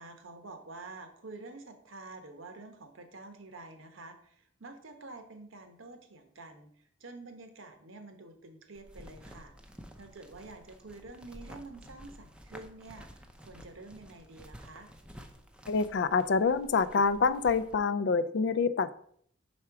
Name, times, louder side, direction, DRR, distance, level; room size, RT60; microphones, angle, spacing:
voice 1, 0.0-9.5 10.0-14.9, right 3 dB, 80° right, 7 dB, 1.0 m, -48 dB
sound 1, 8.7-17.7, equal, 5° right, 0.5 m, -51 dB
voice 2, 15.7-18.9, left 5 dB, 60° left, 15 dB, 0.4 m, -26 dB
5.9 x 4.3 x 4.7 m, 0.63 s
head